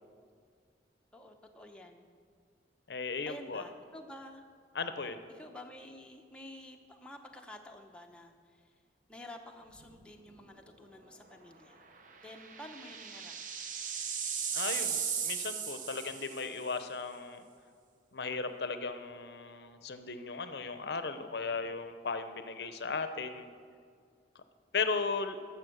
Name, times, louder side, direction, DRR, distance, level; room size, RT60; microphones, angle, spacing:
voice 1, 1.1-2.1 3.2-4.5 5.4-8.7 9.1-11.8 12.2-13.3, left 1 dB, 5° left, 2 dB, 0.7 m, -50 dB
voice 2, 2.9-3.6 4.8-5.3 14.5-17.4 18.1-23.5 24.7-25.4, left 4 dB, 65° left, 9 dB, 0.6 m, -36 dB
sound 1, 9.7-10.1 10.4-10.5 12.0-16.6, right 7 dB, 45° right, 0.7 m, -37 dB
12.0 x 7.0 x 6.5 m, 2.1 s
head